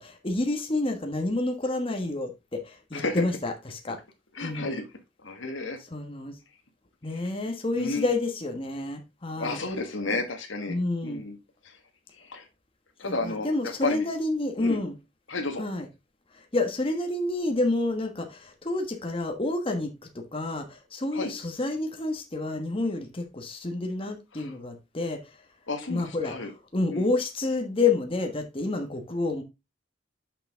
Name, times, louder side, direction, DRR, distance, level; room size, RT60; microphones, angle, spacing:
voice 1, 0.0-4.0 4.4-4.7 5.9-6.4 7.0-9.6 10.1-10.2 10.7-11.2 13.0-14.9 15.6-15.9 16.3-25.3 25.9-26.3 26.7-29.4, left 2 dB, 30° left, 1.3 m, -29 dB
voice 2, 2.9-3.2 4.3-4.8 5.2-5.8 7.1-7.3 7.8-8.1 9.4-10.8 11.0-11.4 11.6-11.8 12.1-12.5 13.0-14.1 14.6-14.8 15.3-15.6 21.1-21.3 24.3-24.5 25.7-26.5 26.9-27.1, left 3 dB, 90° left, 1.6 m, -32 dB
6.8 x 5.9 x 3.6 m
head